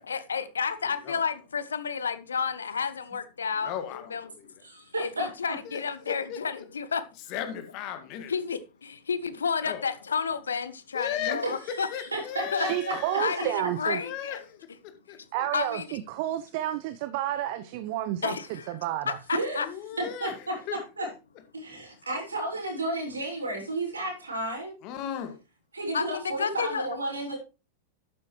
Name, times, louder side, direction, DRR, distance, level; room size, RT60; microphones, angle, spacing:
voice 1, 0.0-3.7 4.1-4.2 5.0-7.0 8.3-11.9 12.5-12.7 13.2-14.4 15.5-16.0 18.2-18.8 19.1-19.7 25.9-26.9 27.3-27.4, left 6 dB, 70° left, 1.0 m, -31 dB
voice 2, 0.8-1.2 3.5-4.5 5.6-6.6 7.3-8.3 9.6-9.9 10.9-13.6 14.0-15.5 19.6-21.1 24.8-25.4, left 9 dB, 40° left, 1.9 m, -37 dB
voice 3, 4.6-5.3 11.2-11.4 11.8-13.7 19.3-19.6 20.0-21.1 21.5-24.7 25.7-27.4, right 1 dB, 75° right, 5.5 m, -33 dB
voice 4, 12.6-14.0 15.3-19.2, right 13 dB, 50° right, 0.7 m, -31 dB
11.5 x 9.5 x 3.2 m
figure-of-eight pair, 90°, 0 cm